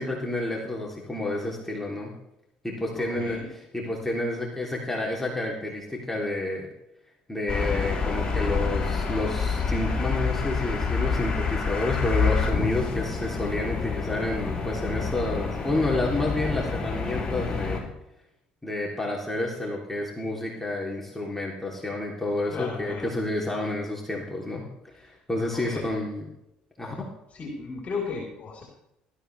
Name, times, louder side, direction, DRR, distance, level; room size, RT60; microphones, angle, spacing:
voice 1, 0.0-2.1 2.6-6.7 7.3-17.9 18.6-24.6 24.9-26.3 26.8-27.1, left 2 dB, 5° left, -2 dB, 3.4 m, -30 dB
voice 2, 2.9-3.5 22.5-23.1 25.5-25.8 27.3-28.6, left 4 dB, 40° left, -1 dB, 4.2 m, -35 dB
sound 1, 7.5-17.8, left 5 dB, 25° left, 6.1 m, -27 dB
19.5 x 13.0 x 3.5 m, 0.83 s
hypercardioid pair, 60°, 4 cm